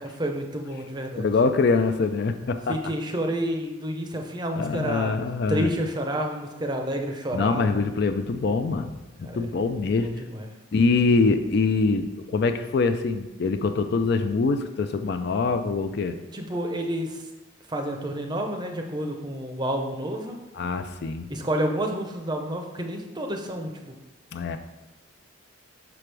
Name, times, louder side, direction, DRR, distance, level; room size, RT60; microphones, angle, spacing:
voice 1, 0.0-1.3 2.7-5.2 5.5-7.9 9.2-9.5 10.0-10.5 16.3-17.3 17.7-20.4 21.3-23.9, right 1 dB, 20° right, 3 dB, 0.6 m, -30 dB
voice 2, 1.2-2.8 4.6-5.7 7.3-10.1 10.7-16.2 20.6-21.3 24.3-24.6, left 4 dB, 50° left, 8 dB, 0.4 m, -24 dB
6.1 x 5.9 x 3.3 m, 1.1 s
head